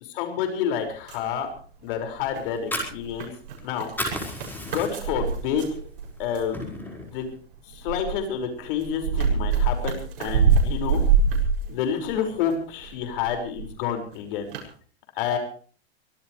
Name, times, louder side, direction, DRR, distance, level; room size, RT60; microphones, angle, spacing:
voice 1, 0.1-1.5 1.8-3.3 3.6-3.9 4.6-5.8 6.2-7.3 7.7-11.0 11.7-14.5 15.2-15.4, left 8 dB, 55° left, 5 dB, 5.7 m, -29 dB
sound 1, 0.9-1.9 2.2-6.6 7.2-12.5 12.8-13.7 14.1-14.2 14.5-14.7, right 5 dB, 55° right, 7.1 m, -25 dB
Fire, 2.4-3.6 3.8-5.2 5.6-5.8 6.2-7.1, left 1 dB, 5° left, 5.1 m, -32 dB
24.5 x 17.0 x 3.3 m, 0.43 s
supercardioid pair, 150°, 32 cm